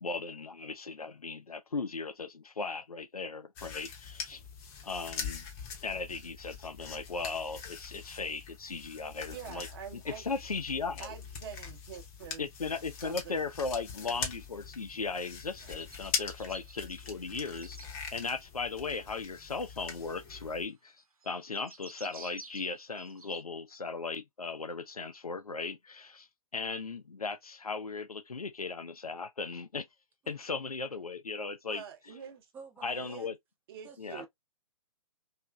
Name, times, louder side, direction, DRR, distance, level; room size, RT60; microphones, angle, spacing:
voice 1, 0.0-4.4 4.8-5.5 5.8-9.7 9.9-11.1 12.4-26.3 26.5-29.9 30.3-31.8 32.8-33.3 34.0-34.3, left 4 dB, 90° left, 0.5 m, -37 dB
sound 1, 3.6-20.7, left 6 dB, 25° left, 0.7 m, -42 dB
voice 2, 9.3-10.2 11.0-12.5 13.0-13.4 15.6-15.7 31.6-32.5 33.0-33.3 33.7-34.3, right 8 dB, 40° right, 0.8 m, -46 dB
sound 2, 15.5-17.9 18.6-23.4, right 3 dB, 80° right, 0.9 m, -53 dB
voice 3, 32.5-33.3 33.8-34.3, right 5 dB, 10° right, 0.4 m, -50 dB
2.9 x 2.4 x 2.2 m
figure-of-eight pair, 125°, 18 cm